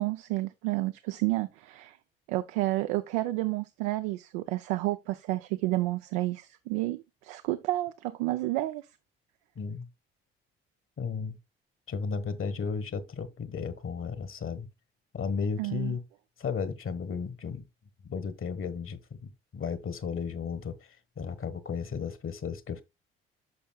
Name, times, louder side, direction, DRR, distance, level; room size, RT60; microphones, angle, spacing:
voice 1, 0.0-2.0 2.3-8.9 15.6-16.0, right 18 dB, 80° right, 0.6 m, -30 dB
voice 2, 9.6-9.9 11.0-11.4 11.9-14.7 15.1-16.0 16.4-17.6 18.0-20.8 21.2-22.8, left 5 dB, 45° left, 1.5 m, -34 dB
11.5 x 5.4 x 2.3 m
hypercardioid pair, 50°, 30 cm